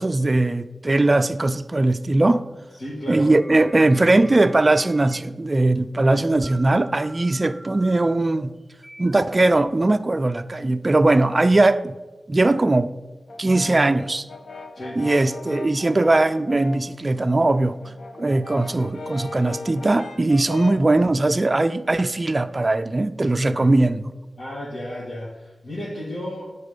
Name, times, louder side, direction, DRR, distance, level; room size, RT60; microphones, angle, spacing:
voice 1, 0.0-2.4 3.1-8.5 9.0-11.9 12.3-12.9 13.4-14.2 15.0-17.7 18.2-24.1, right 2 dB, 30° right, 0.3 m, -20 dB
voice 2, 2.8-3.3 14.7-15.0 23.5-23.7 24.4-26.5, equal, 60° left, 1.9 m, -33 dB
sound 1, 3.3-5.2 6.1-10.1, equal, 5° left, 0.9 m, -44 dB
Brass instrument, 13.3-16.9 17.3-20.9, left 3 dB, 90° left, 0.6 m, -38 dB
9.0 x 4.0 x 5.1 m
wide cardioid pair, 90°, 0 cm